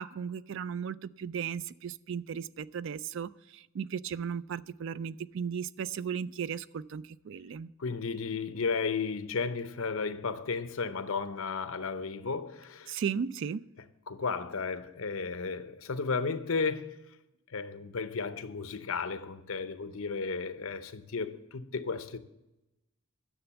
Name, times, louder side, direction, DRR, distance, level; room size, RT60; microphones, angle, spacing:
voice 1, 0.0-7.7 12.9-13.7, right 7 dB, 60° right, 0.3 m, -36 dB
voice 2, 7.8-13.0 14.1-17.0 17.5-22.2, left 4 dB, 75° left, 0.8 m, -34 dB
10.0 x 7.0 x 6.9 m
head